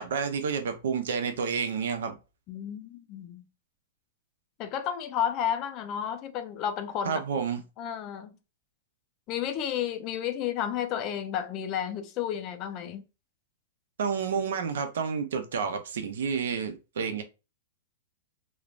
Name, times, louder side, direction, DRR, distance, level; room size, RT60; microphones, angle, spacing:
voice 1, 0.0-2.2 7.0-7.6 14.0-17.2, right 6 dB, 80° right, 0.6 m, -30 dB
voice 2, 2.5-3.4 4.6-7.2 7.8-8.4 9.3-13.0, left 9 dB, 30° left, 0.4 m, -32 dB
3.1 x 2.1 x 2.4 m
supercardioid pair, 160°, 0 cm